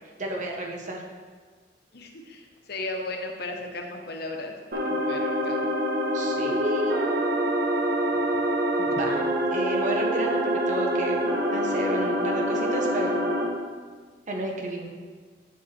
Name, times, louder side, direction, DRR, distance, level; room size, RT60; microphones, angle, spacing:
voice 1, 0.2-1.1 6.1-7.1 8.8-11.2 11.5-13.2 14.3-14.9, right 1 dB, 45° right, 0 dB, 1.0 m, -31 dB
voice 2, 1.9-5.7, left 2 dB, 65° left, 3 dB, 1.0 m, -36 dB
sound 1, 4.7-13.4, equal, 60° right, 1.3 m, -26 dB
9.3 x 5.3 x 4.3 m, 1.5 s
head